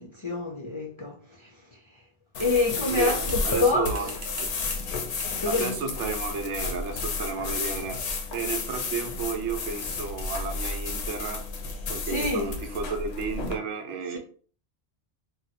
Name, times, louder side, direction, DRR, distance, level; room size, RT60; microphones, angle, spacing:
voice 1, 0.0-1.8 2.4-4.1 4.6-4.7 5.4-5.8 12.1-12.4, left 3 dB, 40° left, 0.4 m, -27 dB
sound 1, 2.3-13.5, left 4 dB, 70° left, 0.9 m, -32 dB
sound 2, 2.4-3.7 3.9-4.9 5.2-5.4 6.1-6.3, right 3 dB, 65° right, 1.1 m, -45 dB
voice 2, 2.9-4.1 4.3-4.5 5.5-11.5 11.9-14.2, right 5 dB, 90° right, 1.0 m, -32 dB
2.9 x 2.0 x 4.0 m
omnidirectional pair, 1.2 m